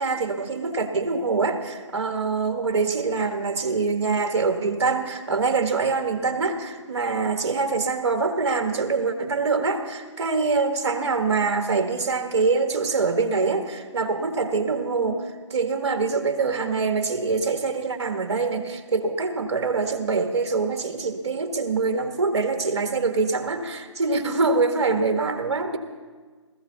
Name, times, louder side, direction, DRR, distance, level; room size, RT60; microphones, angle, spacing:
voice 1, 0.0-15.2 15.5-25.8, right 4 dB, 60° right, 6 dB, 1.6 m, -24 dB
19.0 x 15.0 x 4.0 m, 1.4 s
figure-of-eight pair, 150°, 16 cm